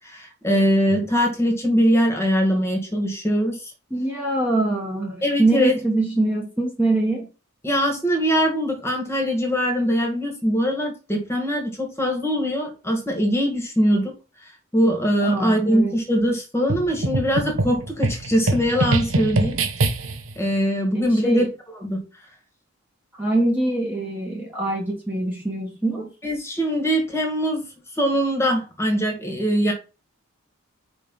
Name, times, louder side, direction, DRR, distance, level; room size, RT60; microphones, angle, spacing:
voice 1, 0.0-3.7 5.2-5.8 7.6-14.1 14.7-19.6 20.4-21.5 21.8-22.0 26.2-27.7 27.9-29.7, equal, 10° left, 2 dB, 1.8 m, -22 dB
voice 2, 3.9-7.3 15.2-15.9 20.9-21.5 23.1-26.1, right 2 dB, 10° right, -2 dB, 1.5 m, -23 dB
sound 1, 16.7-20.3, right 2 dB, 70° right, 1.0 m, -24 dB
5.1 x 4.4 x 5.4 m, 0.31 s
head